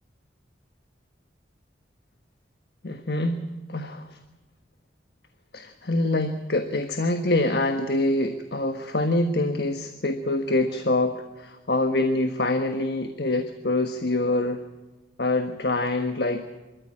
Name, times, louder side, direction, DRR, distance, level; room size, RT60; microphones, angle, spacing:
voice 1, 2.8-4.2 5.5-14.6 15.2-16.5, left 2 dB, 65° left, 7 dB, 1.4 m, -25 dB
26.0 x 14.0 x 8.7 m, 1.1 s
head